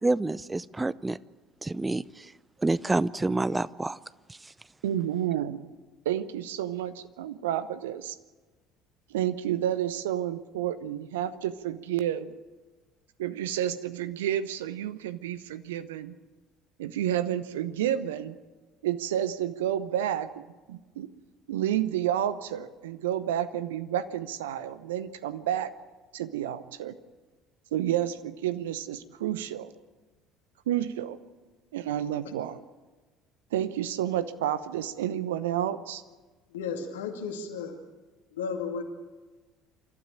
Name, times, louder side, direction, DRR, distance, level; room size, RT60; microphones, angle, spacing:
voice 1, 0.0-1.2 1.6-2.3 2.6-4.0 4.3-4.5, right 2 dB, 15° right, 19 dB, 0.6 m, -28 dB
voice 2, 4.8-5.6 6.0-8.2 9.1-12.3 13.2-16.1 16.8-18.4 18.8-20.3 20.7-21.1 21.5-25.7 26.1-26.9 27.7-29.7 30.7-31.2 31.7-32.6 33.5-36.0, right 11 dB, 75° right, 14 dB, 0.8 m, -30 dB
voice 3, 36.5-37.8 38.3-38.8, left 5 dB, 75° left, 4 dB, 2.2 m, -34 dB
27.5 x 12.5 x 8.7 m, 1.3 s
figure-of-eight pair, 60°, 0 cm